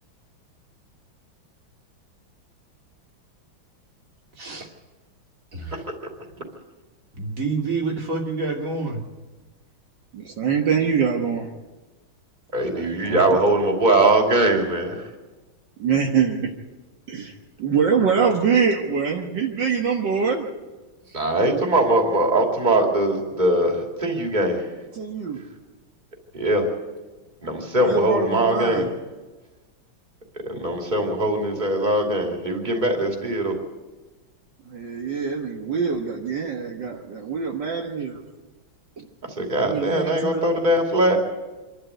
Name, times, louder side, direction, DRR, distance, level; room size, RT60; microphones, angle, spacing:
voice 1, 4.4-4.7 5.5-5.8 7.2-9.1 12.5-13.3 21.1-21.2, right 3 dB, 40° right, 1 dB, 3.0 m, -29 dB
voice 2, 10.1-11.5 13.0-13.2 15.8-16.5 17.1-17.3 17.6-20.5 25.0-25.4 27.8-28.9 34.7-38.2 39.6-40.5, right 6 dB, 65° right, 0 dB, 2.0 m, -24 dB
voice 3, 12.5-15.1 21.1-24.6 26.3-26.7 27.4-28.9 30.4-33.6 39.2-41.2, right 1 dB, 20° right, 2 dB, 2.9 m, -21 dB
26.0 x 12.5 x 8.1 m, 1.2 s
omnidirectional pair, 2.2 m